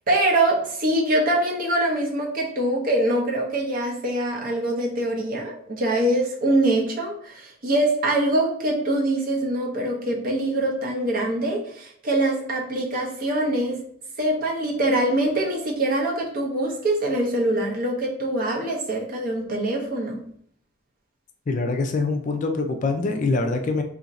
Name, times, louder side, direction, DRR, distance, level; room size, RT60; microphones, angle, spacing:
voice 1, 0.1-13.8 14.2-20.2, right 1 dB, 40° right, -1 dB, 0.7 m, -24 dB
voice 2, 21.5-23.8, left 3 dB, 35° left, 5 dB, 0.3 m, -24 dB
2.8 x 2.5 x 4.0 m, 0.64 s
head